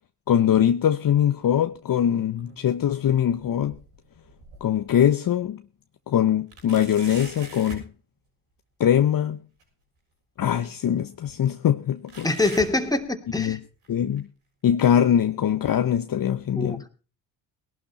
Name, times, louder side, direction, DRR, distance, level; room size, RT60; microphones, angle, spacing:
voice 1, 0.3-3.8 4.6-5.6 6.1-7.8 8.8-9.4 10.4-12.3 13.4-13.6 13.9-14.3 14.6-16.8, left 9 dB, 45° left, 0.9 m, -22 dB
sound 1, 1.7-2.6 3.0-4.9 5.4-5.5 6.5-7.9 9.6-9.7 10.6-10.7 12.1-13.5 13.8-14.2 14.8-14.9 15.8-15.9, right 3 dB, 80° right, 7.3 m, -43 dB
voice 2, 12.2-13.6 16.6-16.9, left 2 dB, 10° left, 2.7 m, -25 dB
19.0 x 12.0 x 4.2 m
supercardioid pair, 60°, 49 cm